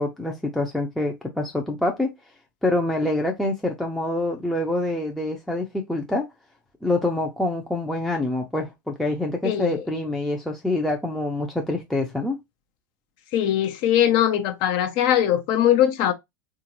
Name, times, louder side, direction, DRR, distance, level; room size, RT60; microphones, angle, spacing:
voice 1, 0.0-2.1 2.6-6.3 6.8-12.4, left 2 dB, ahead, 0.6 m, -26 dB
voice 2, 9.4-9.8 13.3-16.1, left 11 dB, 45° left, 0.6 m, -21 dB
3.6 x 2.5 x 2.8 m
figure-of-eight pair, 90°, 11 cm